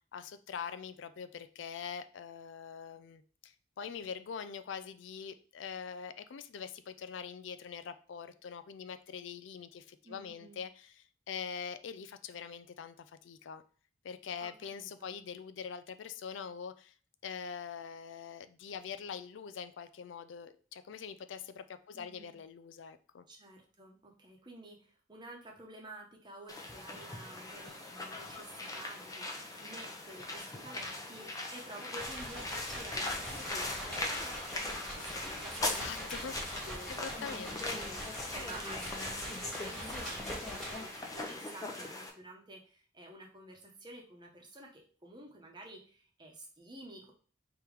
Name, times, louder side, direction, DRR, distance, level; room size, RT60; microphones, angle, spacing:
voice 1, 0.1-13.6 14.0-16.9 17.2-23.2 35.6-36.3 36.9-37.8, left 6 dB, 80° left, 12 dB, 0.4 m, -44 dB
voice 2, 10.0-10.6 14.4-15.2 21.9-22.3 23.3-29.3 29.6-37.1 37.4-47.1, right 1 dB, 25° right, 0 dB, 1.0 m, -51 dB
sound 1, 26.5-42.1, left 2 dB, 20° left, 0.7 m, -40 dB
sound 2, 32.0-41.3, equal, ahead, 1.7 m, -43 dB
3.5 x 3.0 x 4.8 m, 0.41 s
head